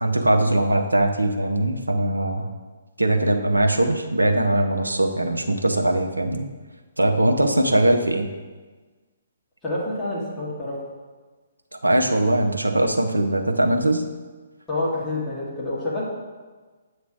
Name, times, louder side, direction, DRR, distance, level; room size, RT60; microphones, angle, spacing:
voice 1, 0.0-2.5 3.0-6.5 7.0-8.3 11.8-14.0, right 1 dB, 85° right, 4 dB, 0.8 m, -21 dB
voice 2, 9.6-10.8 14.7-16.1, left 2 dB, 10° left, -9 dB, 2.1 m, -27 dB
8.1 x 3.1 x 6.3 m, 1.4 s
figure-of-eight pair, 130°, 0 cm